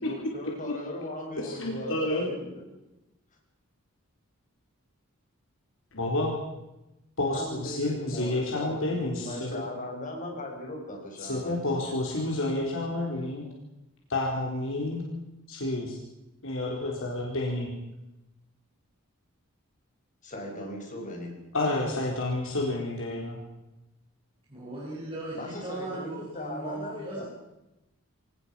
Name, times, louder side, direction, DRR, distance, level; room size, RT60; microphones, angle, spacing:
voice 1, 0.0-2.6 7.2-11.9 20.2-21.3 25.4-27.2, left 1 dB, 35° left, 1 dB, 6.0 m, -38 dB
voice 2, 1.4-2.4 5.9-6.4 7.2-9.7 11.2-13.5 14.1-15.0 15.5-16.0 16.4-17.7 21.5-23.4, left 2 dB, 65° left, -1 dB, 4.2 m, -30 dB
voice 3, 24.5-27.2, right 2 dB, 25° right, -6 dB, 6.4 m, -38 dB
25.5 x 18.5 x 5.8 m, 0.95 s
head